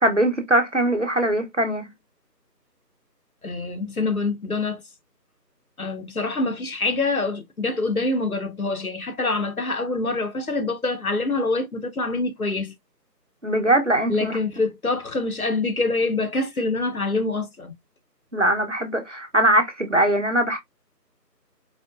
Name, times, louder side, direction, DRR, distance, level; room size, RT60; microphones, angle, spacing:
voice 1, 0.0-1.9 13.4-14.4 18.3-20.6, right 1 dB, 45° right, 0.8 m, -21 dB
voice 2, 3.4-4.8 5.8-12.7 14.1-17.7, left 3 dB, 60° left, 0.7 m, -25 dB
4.1 x 3.1 x 2.4 m
figure-of-eight pair, 170°, 50 cm